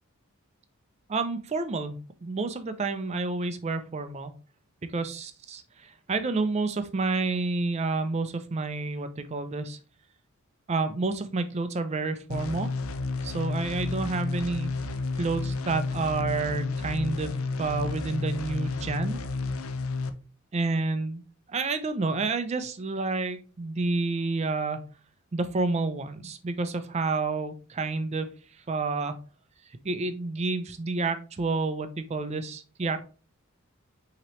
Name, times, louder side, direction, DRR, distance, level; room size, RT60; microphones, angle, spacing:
voice 1, 1.1-2.0 2.2-4.3 4.9-9.8 10.7-12.7 13.2-14.7 15.2-19.2 20.5-21.2 21.5-24.8 25.3-28.3 28.7-29.2 29.8-33.0, right 3 dB, 30° right, 10 dB, 0.4 m, -29 dB
sound 1, 12.3-20.1, left 3 dB, 70° left, 0.5 m, -31 dB
5.9 x 2.9 x 3.0 m, 0.37 s
head